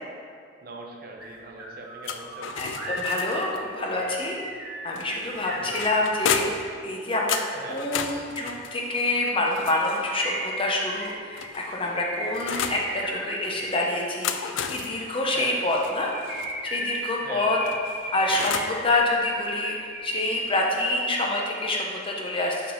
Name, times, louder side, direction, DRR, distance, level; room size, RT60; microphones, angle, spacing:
voice 1, 0.6-2.5 5.5-5.8 7.5-7.9 15.3-15.6 17.2-17.7, right 2 dB, 50° right, 0 dB, 0.7 m, -41 dB
sound 1, 1.2-1.3 1.6-6.3 9.6-13.8 15.7-20.3 20.6-20.7, equal, 10° right, 1.1 m, -36 dB
sound 2, 2.0-3.6 5.0-6.7 7.3-10.2 11.0-12.9 14.0-16.5 17.7-18.8, left 7 dB, 80° left, 0.4 m, -33 dB
voice 2, 2.6-7.4 7.7-16.1 16.6-17.6 18.1-19.8 20.0-22.7, left 2 dB, 30° left, -1 dB, 0.7 m, -27 dB
5.6 x 3.6 x 5.5 m, 2.2 s
head